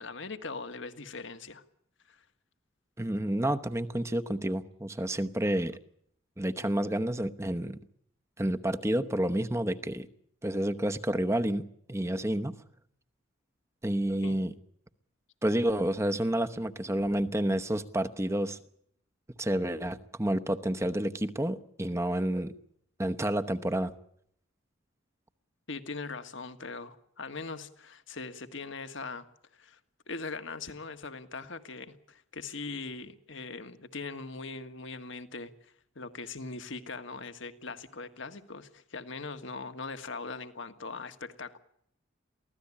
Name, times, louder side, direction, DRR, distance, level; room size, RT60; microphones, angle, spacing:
voice 1, 0.0-1.6 2.1-2.3 14.2-14.4 25.7-29.3 29.5-29.8 30.1-41.6, left 4 dB, 65° left, 9 dB, 1.6 m, -41 dB
voice 2, 3.0-5.8 6.4-7.8 8.4-10.1 10.4-12.6 13.8-14.5 15.4-18.6 19.4-22.5 23.0-23.9, right 1 dB, 15° right, 9 dB, 0.9 m, -29 dB
23.5 x 16.5 x 8.5 m, 0.70 s
head